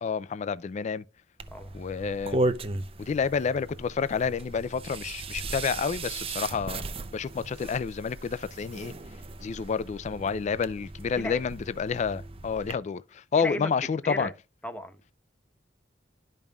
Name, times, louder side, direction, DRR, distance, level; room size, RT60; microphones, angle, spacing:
voice 1, 0.0-1.0 1.7-2.4 3.0-6.9 7.1-8.9 9.4-14.3, left 6 dB, 40° left, 0.3 m, -29 dB
sound 1, 1.4-12.8, right 2 dB, 30° right, 0.6 m, -36 dB
voice 2, 13.4-13.7 14.0-14.3 14.6-15.1, left 1 dB, 10° left, 0.9 m, -35 dB
12.0 x 5.3 x 2.3 m
head